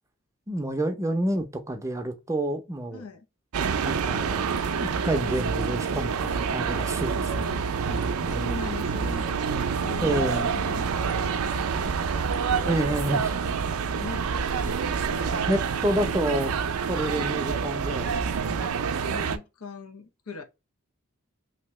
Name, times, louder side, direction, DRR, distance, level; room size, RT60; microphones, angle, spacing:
voice 1, 0.5-3.0 3.8-7.7 8.2-8.6 9.5-9.6 10.0-10.5 12.6-13.4 15.4-16.5 16.9-18.9, right 1 dB, 15° right, 0.5 m, -29 dB
voice 2, 2.9-3.3 7.9-16.2 17.1-17.3 19.1-20.4, left 4 dB, 80° left, 0.7 m, -42 dB
sound 1, 3.5-19.4, right 6 dB, 80° right, 0.4 m, -27 dB
2.9 x 2.7 x 3.1 m
head